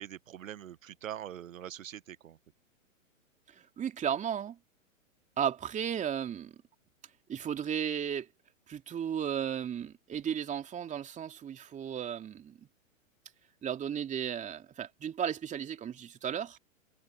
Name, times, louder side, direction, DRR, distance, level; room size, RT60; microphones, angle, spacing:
voice 1, 0.0-2.4, right 10 dB, 75° right, 1.1 m, -43 dB
voice 2, 3.5-4.6 5.4-6.6 7.3-8.3 8.7-12.7 13.6-16.6, right 8 dB, 20° right, 2.7 m, -34 dB
hypercardioid pair, 120°, 40 cm